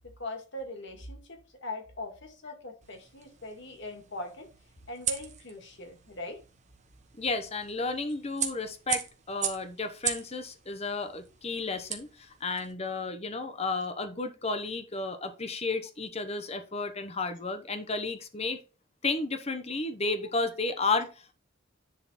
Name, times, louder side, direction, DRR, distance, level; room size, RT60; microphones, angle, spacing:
voice 1, 0.2-4.5 4.9-6.4, left 2 dB, 55° left, 1.9 m, -41 dB
sound 1, 2.8-12.7, right 8 dB, 35° right, 1.3 m, -39 dB
voice 2, 7.2-18.6 19.0-21.3, left 3 dB, 30° left, 0.9 m, -32 dB
10.5 x 3.9 x 4.2 m
head